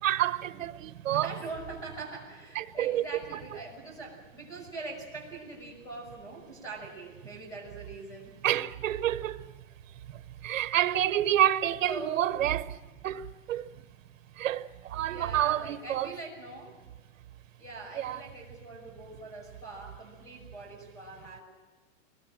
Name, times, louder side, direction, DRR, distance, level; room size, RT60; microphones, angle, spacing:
voice 1, 0.0-1.3 2.5-3.0 3.3-3.6 8.4-9.4 10.4-12.7 13.0-13.6 14.4-16.1 18.0-18.2, right 12 dB, 80° right, 1.2 m, -28 dB
voice 2, 0.9-8.7 11.8-12.2 14.9-16.8 17.6-21.4, right 3 dB, 10° left, 6.1 m, -43 dB
24.0 x 21.5 x 7.6 m
supercardioid pair, 175°, 38 cm